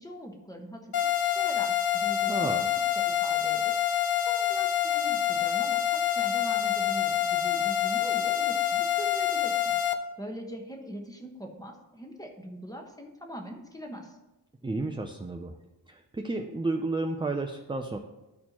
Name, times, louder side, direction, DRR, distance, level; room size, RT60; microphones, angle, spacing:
voice 1, 0.0-2.5 3.0-9.8 10.2-14.2, equal, 10° left, 2 dB, 0.9 m, -42 dB
sound 1, 0.9-9.9, left 10 dB, 60° left, 0.6 m, -27 dB
voice 2, 2.3-2.6 14.6-15.6 15.9-18.0, right 2 dB, 15° right, 4 dB, 0.3 m, -32 dB
12.5 x 4.3 x 2.9 m, 1.0 s
wide cardioid pair, 120°, 43 cm